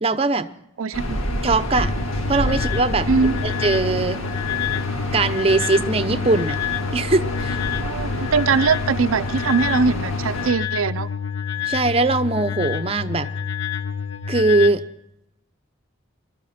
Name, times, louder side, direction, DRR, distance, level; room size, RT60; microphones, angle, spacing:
voice 1, 0.0-0.5 1.4-1.9 2.3-3.1 3.4-4.2 5.1-6.6 6.9-7.6 11.6-13.3 14.3-14.8, right 3 dB, 30° right, 11 dB, 0.7 m, -20 dB
voice 2, 0.8-1.2 3.1-3.4 7.8-11.1, right 5 dB, 85° right, 11 dB, 0.5 m, -21 dB
sound 1, 0.9-10.5, equal, 80° left, 2.0 m, -28 dB
sound 2, 1.7-14.7, left 7 dB, 60° left, 1.2 m, -28 dB
21.0 x 12.5 x 4.3 m, 0.78 s
head